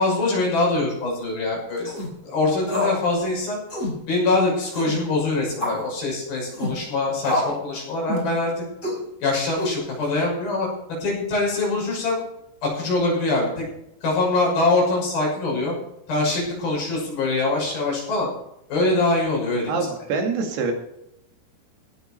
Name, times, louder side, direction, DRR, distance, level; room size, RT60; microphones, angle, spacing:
voice 1, 0.0-1.9 2.2-3.6 4.1-8.6 9.2-10.7 11.0-12.2 12.6-13.7 14.0-15.7 16.1-18.3 18.7-20.1, left 2 dB, 60° left, -2 dB, 8.2 m, -23 dB
sound 1, 1.8-2.1 2.7-3.0 3.3-3.4 3.7-4.0 4.7-5.0 5.6-5.8 6.5-6.8 7.2-7.6 8.1-8.3 8.8-9.0 9.6-10.1, left 2 dB, 15° left, 5.7 m, -27 dB
voice 2, 19.7-20.7, right 4 dB, 70° right, 3 dB, 4.2 m, -25 dB
17.0 x 10.0 x 4.5 m, 0.79 s
omnidirectional pair, 4.8 m